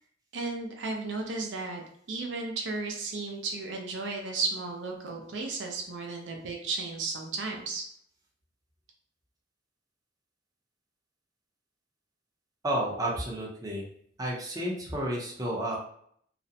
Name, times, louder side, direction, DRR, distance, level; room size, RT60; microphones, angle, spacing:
voice 1, 0.3-1.8 2.1-7.8, right 3 dB, 85° right, 2 dB, 0.5 m, -34 dB
voice 2, 12.6-13.9 14.2-15.8, right 1 dB, 20° right, -3 dB, 0.6 m, -31 dB
2.4 x 2.0 x 2.7 m, 0.65 s
head